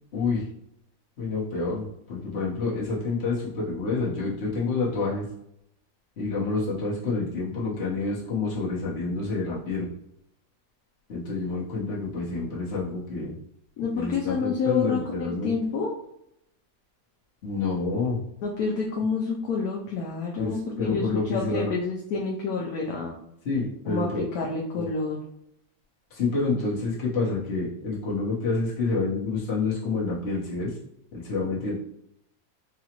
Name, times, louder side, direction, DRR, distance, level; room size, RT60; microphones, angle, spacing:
voice 1, 0.1-0.4 1.2-5.3 6.2-9.9 11.1-13.3 13.9-15.5 17.4-18.2 20.4-21.7 23.4-24.3 24.7-24.9 26.1-30.8 31.1-31.7, left 3 dB, 40° left, -7 dB, 1.2 m, -28 dB
voice 2, 13.8-15.9 18.4-23.2 23.9-25.2, left 4 dB, 70° left, -2 dB, 0.9 m, -28 dB
4.9 x 2.4 x 2.9 m, 0.76 s
omnidirectional pair, 2.0 m